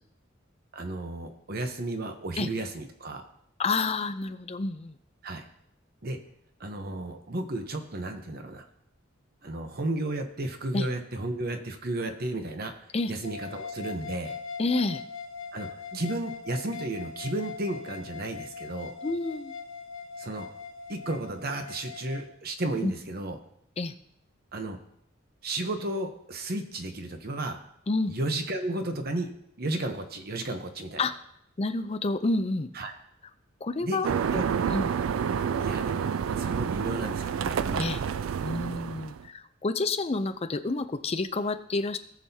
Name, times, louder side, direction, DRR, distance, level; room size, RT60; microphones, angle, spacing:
voice 1, 0.7-3.3 5.2-5.4 6.0-6.2 6.6-8.6 9.4-12.7 13.1-14.4 15.5-18.9 20.2-20.5 20.9-23.4 24.5-24.8 25.4-27.6 28.1-29.3 29.6-31.1 32.7-32.9 33.8-34.5 35.6-36.1 36.4-37.9, right 2 dB, 50° right, 6 dB, 0.9 m, -33 dB
voice 2, 3.6-4.9 10.7-10.9 12.9-13.1 14.6-15.0 15.9-16.0 19.0-19.5 22.8-22.9 23.8-23.9 27.9-28.1 31.0-31.1 31.6-32.7 33.6-34.1 34.7-34.9 37.8-38.0 38.4-42.0, left 3 dB, 30° left, 9 dB, 0.5 m, -29 dB
sound 1, 13.2-22.3, left 5 dB, 75° left, 1.9 m, -41 dB
sound 2, 34.0-39.3, right 7 dB, 85° right, 0.4 m, -29 dB
18.0 x 6.3 x 2.8 m, 0.73 s
head